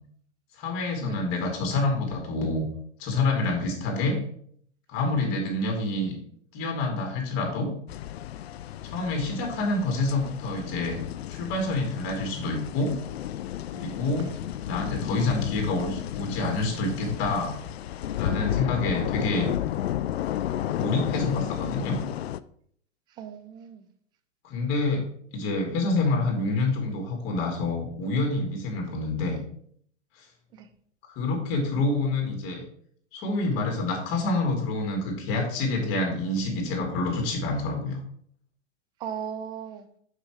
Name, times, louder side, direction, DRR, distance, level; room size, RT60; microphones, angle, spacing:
voice 1, 0.6-2.7 3.0-4.2 4.9-6.1 6.5-7.7 8.8-11.0 11.3-12.9 13.7-14.3 14.7-17.6 18.2-19.5 20.7-22.0 24.4-25.1 25.3-29.4 31.2-32.6 33.1-38.0, left 2 dB, 35° left, 2 dB, 2.8 m, -27 dB
sound 1, 7.9-22.4, left 12 dB, 60° left, 0.5 m, -32 dB
voice 2, 23.2-23.8 30.5-30.7 39.0-39.9, right 8 dB, 10° right, 9 dB, 0.3 m, -37 dB
6.8 x 5.6 x 4.7 m, 0.63 s
figure-of-eight pair, 110°, 37 cm